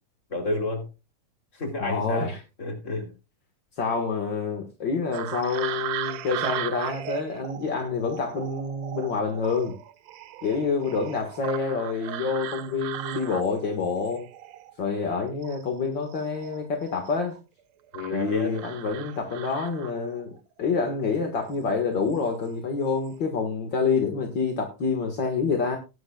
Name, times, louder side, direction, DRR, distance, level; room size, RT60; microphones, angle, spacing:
voice 1, 0.3-0.8 1.5-2.3 2.6-3.1 17.9-18.6, left 2 dB, 20° left, 3 dB, 3.5 m, -30 dB
voice 2, 1.8-2.4 3.8-9.8 10.4-14.3 14.8-17.3 18.1-25.8, left 5 dB, 45° left, 3 dB, 1.7 m, -27 dB
sound 1, 5.1-15.1 15.4-17.4 17.9-20.2 21.4-21.6 22.1-22.5 22.8-23.1, right 12 dB, 85° right, 1.5 m, -37 dB
18.5 x 11.0 x 2.4 m, 0.29 s
omnidirectional pair, 4.2 m